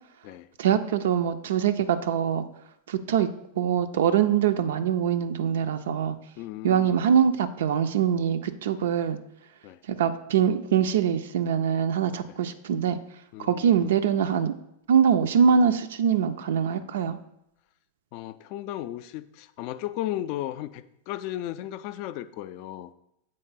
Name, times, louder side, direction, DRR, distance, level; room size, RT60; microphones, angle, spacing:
voice 1, 0.6-2.4 2.9-3.3 3.6-6.2 6.6-9.2 9.9-13.0 13.4-14.6 14.9-17.2, right 8 dB, 60° right, 9 dB, 0.3 m, -23 dB
voice 2, 6.4-7.0 9.6-9.8 13.3-13.9 18.1-22.9, left 13 dB, 45° left, 12 dB, 0.3 m, -35 dB
7.5 x 3.8 x 3.8 m, 0.80 s
figure-of-eight pair, 90°, 0 cm